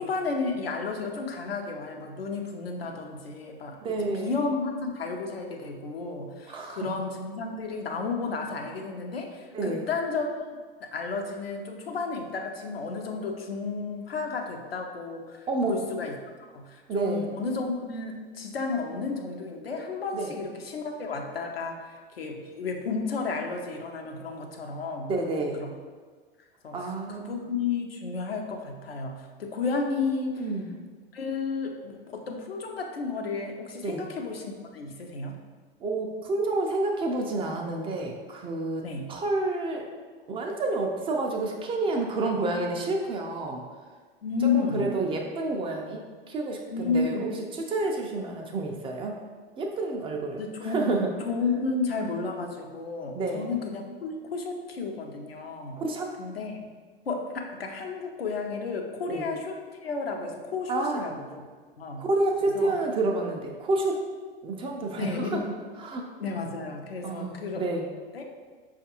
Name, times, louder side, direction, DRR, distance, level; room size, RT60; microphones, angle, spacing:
voice 1, 0.0-10.3 10.8-16.1 16.5-21.8 22.1-25.1 25.4-25.7 26.6-26.8 27.2-30.5 31.1-35.4 38.8-39.1 44.2-44.8 46.7-47.3 50.4-50.8 51.2-55.8 56.2-56.6 57.1-61.3 61.8-62.0 62.5-62.7 65.0-65.4 66.2-67.6 68.1-68.2, left 4 dB, 85° left, 2 dB, 0.6 m, -32 dB
voice 2, 3.8-4.3 6.5-7.0 9.5-9.8 15.5-15.8 16.9-17.3 20.1-20.3 25.1-25.6 26.7-27.4 30.4-30.7 33.8-34.0 35.8-38.8 39.1-39.8 40.3-43.6 44.4-49.2 49.6-51.1 53.1-53.5 55.7-56.1 59.1-59.2 60.7-61.1 62.0-64.0 64.4-65.4 65.8-66.0 67.0-67.9, right 2 dB, 20° right, 1 dB, 0.3 m, -29 dB
5.0 x 2.4 x 2.8 m, 1.5 s
figure-of-eight pair, 90°, 29 cm